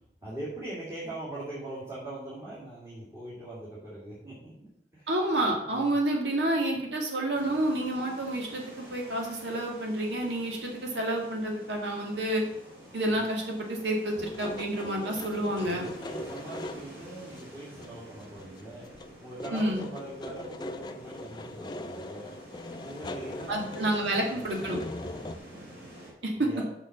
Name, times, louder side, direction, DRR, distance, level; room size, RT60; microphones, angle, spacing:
voice 1, 0.2-5.1 5.6-6.0 13.1-13.2 15.6-18.9 19.2-22.3 22.8-24.5 25.2-25.3 26.4-26.6, right 1 dB, 15° right, -9 dB, 2.7 m, -42 dB
voice 2, 5.1-12.4 12.9-15.8 19.5-19.8 23.5-24.8 26.2-26.3, right 1 dB, 85° right, 0 dB, 1.9 m, -29 dB
sound 1, 7.3-26.1, right 1 dB, 65° right, 3.7 m, -49 dB
sound 2, 14.2-17.0 17.3-17.4 17.8-18.6 18.9-25.4, left 1 dB, 25° left, 0.5 m, -41 dB
6.6 x 6.0 x 6.7 m, 0.80 s
head